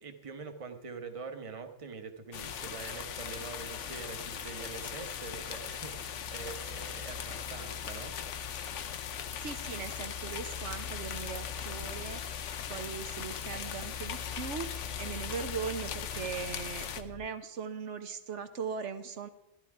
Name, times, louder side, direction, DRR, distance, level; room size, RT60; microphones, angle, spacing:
voice 1, 0.0-8.2 16.1-16.4, right 5 dB, 30° right, 6 dB, 1.0 m, -44 dB
sound 1, 2.3-17.0, left 8 dB, 80° left, 1.1 m, -40 dB
sound 2, 2.4-17.3, left 7 dB, 60° left, 0.7 m, -46 dB
voice 2, 9.4-19.3, right 6 dB, 75° right, 8 dB, 1.1 m, -39 dB
13.0 x 11.5 x 4.8 m, 0.83 s
omnidirectional pair, 1.2 m